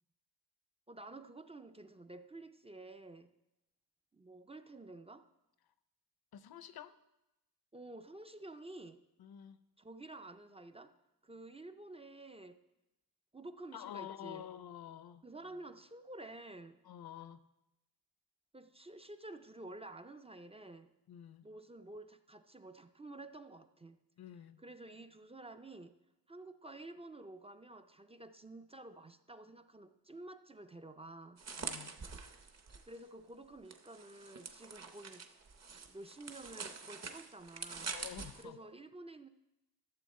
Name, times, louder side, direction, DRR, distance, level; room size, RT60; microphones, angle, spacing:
voice 1, 0.9-3.3 4.1-5.3 7.7-9.0 9.8-11.0 11.2-12.6 13.3-14.5 15.2-16.8 18.5-20.9 21.4-24.0 24.6-26.0 26.3-31.4 32.9-35.3 35.9-37.9 38.4-39.3, right 2 dB, 15° right, 0.3 m, -51 dB
voice 2, 6.3-6.9 9.2-9.6 13.7-15.2 16.8-17.4 21.1-21.5 24.2-24.6 31.5-32.0 37.9-38.6, left 10 dB, 70° left, 0.6 m, -48 dB
sound 1, 31.4-33.0 33.7-38.4, right 5 dB, 40° right, 0.8 m, -46 dB
12.5 x 7.1 x 4.2 m
wide cardioid pair, 135°, 39 cm